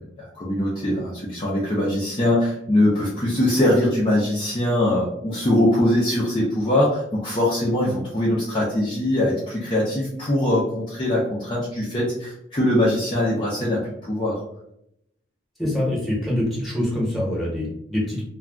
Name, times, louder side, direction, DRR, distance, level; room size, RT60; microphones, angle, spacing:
voice 1, 0.2-14.4, left 1 dB, 25° left, -6 dB, 0.5 m, -22 dB
voice 2, 15.6-18.2, left 1 dB, ahead, -6 dB, 1.0 m, -25 dB
2.3 x 2.2 x 3.5 m, 0.79 s
head